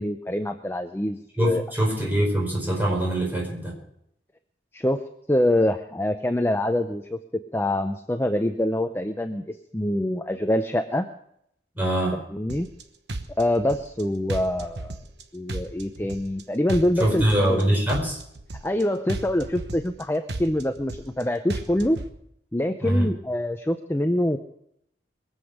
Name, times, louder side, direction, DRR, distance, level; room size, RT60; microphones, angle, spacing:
voice 1, 0.0-1.6 4.7-5.0 5.3-7.2 7.5-11.1 12.3-12.7 13.4-15.0 15.3-17.6 18.6-22.0 22.5-24.4, left 1 dB, 15° left, 7 dB, 0.5 m, -25 dB
voice 2, 1.4-3.7 11.7-12.2 17.0-18.2 22.8-23.1, right 1 dB, 10° right, -2 dB, 4.6 m, -23 dB
hot drop, 12.5-12.8 13.1-14.0 14.3-15.2 15.5-16.4 16.7-17.6 17.9-18.8 19.1-20.0 20.3-21.2 21.5-22.1, right 2 dB, 70° right, 1.2 m, -34 dB
22.5 x 8.0 x 6.5 m, 0.74 s
head